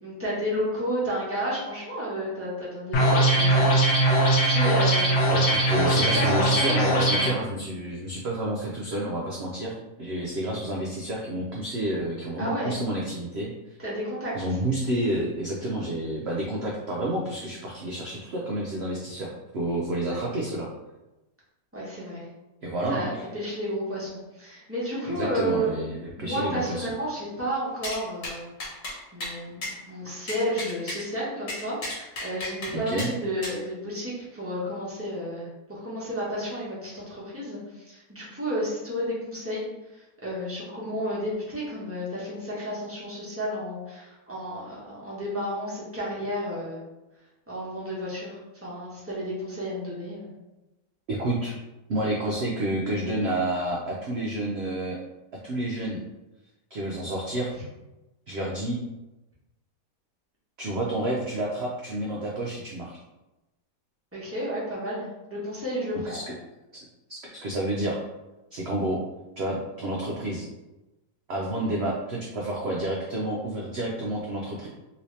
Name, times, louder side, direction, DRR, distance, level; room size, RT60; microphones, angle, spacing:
voice 1, 0.0-4.1 4.4-5.1 5.7-7.3 12.4-12.7 13.8-14.3 20.0-20.2 21.7-22.2 22.9-25.8 26.2-28.5 29.1-46.8 47.5-50.3 64.1-66.3 71.4-71.6, equal, 10° right, -8 dB, 0.8 m, -32 dB
sound 1, 2.9-7.3, right 1 dB, 70° left, 1.3 m, -21 dB
voice 2, 5.3-13.5 14.3-20.7 22.6-23.2 25.0-26.9 32.7-33.1 51.1-51.5 51.9-55.0 55.4-56.0 56.7-57.5 58.3-58.8 60.6-63.0 66.0-66.3 66.7-66.8 67.1-68.0 68.5-69.0 69.4-70.5 71.3-74.7, right 1 dB, 75° right, -3 dB, 0.5 m, -29 dB
sound 2, 27.8-28.0 28.2-28.3 28.6-29.0 29.2-29.3 29.6-29.7 30.3-31.0 31.5-32.7 33.0-33.1 33.4-33.6, left 1 dB, 55° left, 1.4 m, -33 dB
3.0 x 2.8 x 3.2 m, 1.0 s
omnidirectional pair, 1.7 m